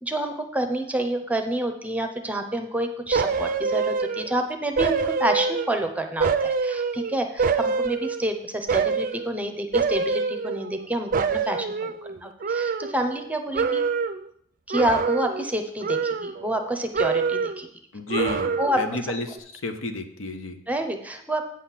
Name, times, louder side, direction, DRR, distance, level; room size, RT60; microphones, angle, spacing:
voice 1, 0.0-13.8 14.7-17.7 18.6-19.0 20.7-21.5, right 1 dB, 5° right, 6 dB, 0.7 m, -28 dB
sound 1, 3.1-4.4 4.8-5.8 6.2-8.3 8.7-9.3 9.7-10.9 11.1-13.3 13.5-14.2 14.7-15.5 15.8-16.7 16.9-17.7 18.1-18.9 19.3-19.4, right 5 dB, 45° right, 0.4 m, -26 dB
voice 2, 17.9-19.4 19.6-20.6, left 2 dB, 85° left, 7 dB, 0.9 m, -31 dB
8.7 x 4.2 x 7.3 m, 0.68 s
head